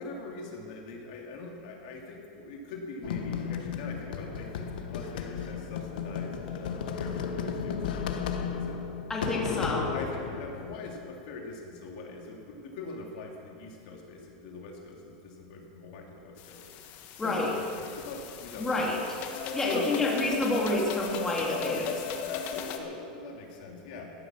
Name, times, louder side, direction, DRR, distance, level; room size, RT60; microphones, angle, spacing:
voice 1, 0.0-8.8 9.3-16.6 17.2-19.1 19.6-20.0 21.6-24.1, left 3 dB, 65° left, 0 dB, 2.8 m, -42 dB
sound 1, 3.0-11.1, left 7 dB, 80° left, 1.3 m, -34 dB
voice 2, 9.1-9.9 17.2-17.5 18.6-19.0 19.5-22.0, left 2 dB, 10° left, -3 dB, 2.5 m, -28 dB
sound 2, 16.4-22.8, left 7 dB, 45° left, 1.4 m, -37 dB
15.5 x 11.5 x 6.4 m, 2.4 s
supercardioid pair, 145°, 5 cm